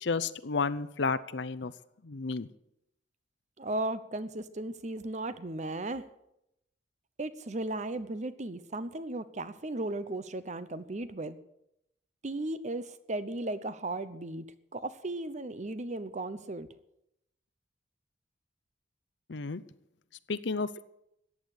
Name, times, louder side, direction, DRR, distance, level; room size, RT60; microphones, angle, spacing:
voice 1, 0.0-1.7 2.0-2.5 19.3-19.6 20.3-20.8, left 4 dB, 70° left, 14 dB, 0.7 m, -32 dB
voice 2, 3.6-6.1 7.2-11.4 12.2-14.5 14.7-16.7, right 2 dB, 40° right, 14 dB, 0.8 m, -36 dB
14.5 x 9.0 x 8.4 m, 0.82 s
head